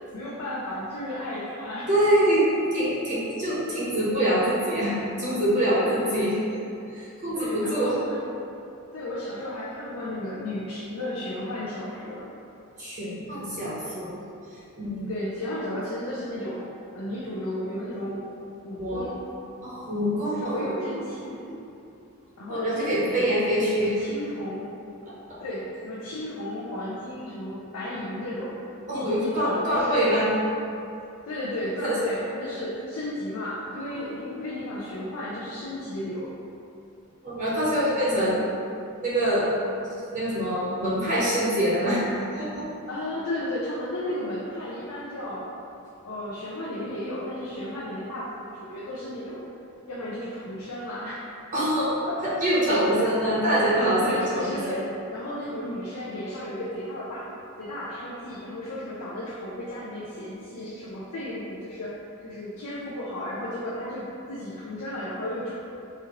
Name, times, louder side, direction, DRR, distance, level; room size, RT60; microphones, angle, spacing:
voice 1, 0.1-1.9 5.8-6.3 7.3-8.3 8.9-12.3 15.1-16.7 16.9-18.2 18.6-19.2 20.2-21.4 22.4-23.3 23.8-24.7 25.4-30.0 31.2-36.3 42.9-45.5 46.0-49.4 49.9-51.4 52.9-53.1 54.0-61.9 62.2-65.5, left 1 dB, 75° left, -8 dB, 0.5 m, -34 dB
voice 2, 1.9-6.4 6.9-8.0 12.8-14.1 14.8-15.1 18.8-19.0 19.6-20.7 21.2-21.6 22.5-24.0 28.9-30.3 31.8-32.0 34.3-34.4 37.2-38.4 39.0-39.5 40.1-42.0 42.3-42.7 51.5-51.9 52.2-54.8, equal, 35° right, -8 dB, 0.7 m, -25 dB
4.2 x 2.4 x 2.9 m, 2.7 s
head